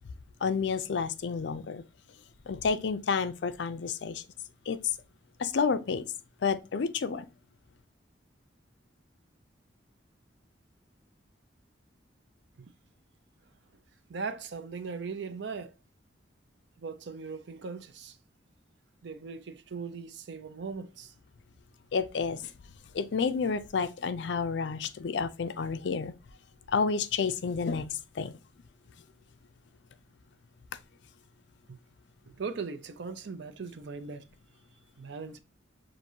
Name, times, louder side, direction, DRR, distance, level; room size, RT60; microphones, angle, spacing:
voice 1, 0.4-1.8 2.5-4.2 4.7-4.8 5.4-6.0 6.4-7.3 21.9-22.5 22.9-26.1 26.7-27.9 28.2-28.3, left 5 dB, 65° left, 0.4 m, -30 dB
voice 2, 14.1-15.7 16.8-18.2 19.0-21.1 31.7-31.8 32.3-34.3 35.0-35.4, right 5 dB, 65° right, 0.5 m, -39 dB
6.1 x 2.5 x 2.7 m
head